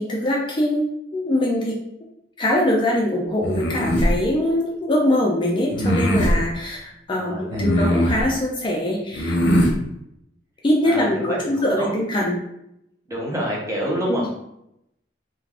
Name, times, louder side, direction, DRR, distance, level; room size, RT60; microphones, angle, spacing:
voice 1, 0.0-1.8 2.4-9.4 10.6-12.4 14.0-14.3, left 1 dB, 25° left, -2 dB, 0.4 m, -22 dB
sound 1, 3.4-4.1 5.7-6.4 7.5-8.2 9.1-9.7, equal, 80° left, 0.6 m, -20 dB
voice 2, 7.2-7.7 10.8-11.4 11.8-11.9 13.1-14.3, equal, 20° right, -3 dB, 0.7 m, -27 dB
2.4 x 2.2 x 3.4 m, 0.80 s
head